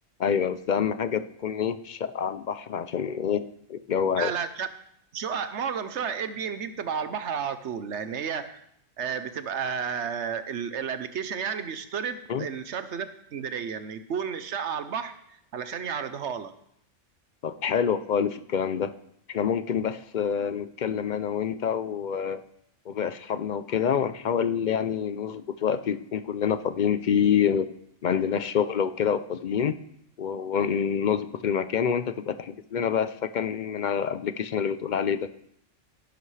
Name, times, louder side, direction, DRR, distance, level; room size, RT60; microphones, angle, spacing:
voice 1, 0.2-4.3 12.3-12.5 17.4-18.9 19.3-22.4 22.9-27.7 28.0-29.8 30.2-35.3, left 7 dB, 55° left, 12 dB, 0.5 m, -27 dB
voice 2, 4.2-4.7 5.1-8.6 9.0-15.1 15.5-16.5, right 7 dB, 65° right, 11 dB, 1.0 m, -32 dB
17.0 x 10.0 x 3.3 m, 0.74 s
omnidirectional pair, 1.3 m